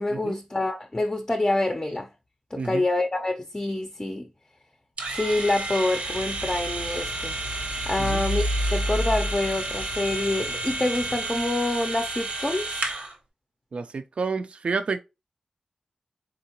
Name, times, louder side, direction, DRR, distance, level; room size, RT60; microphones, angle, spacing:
voice 1, 0.0-2.1 2.5-4.3 5.1-7.4 7.9-8.4 8.7-12.8, left 2 dB, 25° left, 0.5 m, -26 dB
sound 1, 5.0-13.1, right 2 dB, 75° right, 0.9 m, -31 dB
sound 2, 6.0-11.2, equal, 80° left, 0.5 m, -31 dB
voice 2, 13.7-15.0, right 4 dB, 60° right, 0.4 m, -29 dB
3.9 x 3.6 x 2.9 m
wide cardioid pair, 75°, 2 cm